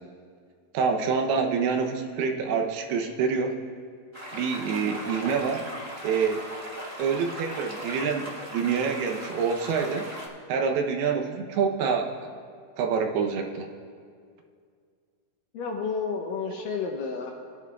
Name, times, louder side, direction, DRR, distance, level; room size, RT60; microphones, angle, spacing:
voice 1, 0.7-3.6 4.3-5.6 6.0-6.4 7.0-10.1 10.5-12.1 12.8-13.7, right 5 dB, 80° right, 3 dB, 2.7 m, -26 dB
sound 1, 4.1-10.3, equal, 20° right, 0.5 m, -38 dB
voice 2, 4.7-5.1 15.5-17.3, left 5 dB, 75° left, 1 dB, 2.1 m, -31 dB
21.5 x 11.0 x 2.3 m, 2.1 s
omnidirectional pair, 4.6 m